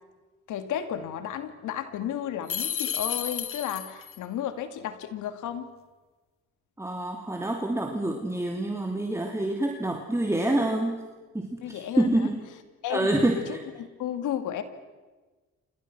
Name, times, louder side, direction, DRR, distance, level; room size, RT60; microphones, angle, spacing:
voice 1, 0.5-5.7 11.6-12.3 12.8-13.1 13.4-14.6, left 10 dB, 85° left, 9 dB, 2.4 m, -33 dB
sound 1, 2.5-4.2, left 8 dB, 45° left, 1.2 m, -31 dB
voice 2, 6.8-11.1 11.3-12.4 12.9-13.6, right 1 dB, 10° right, 3 dB, 2.7 m, -27 dB
28.5 x 27.0 x 6.2 m, 1.3 s
cardioid pair, 90°, 30 cm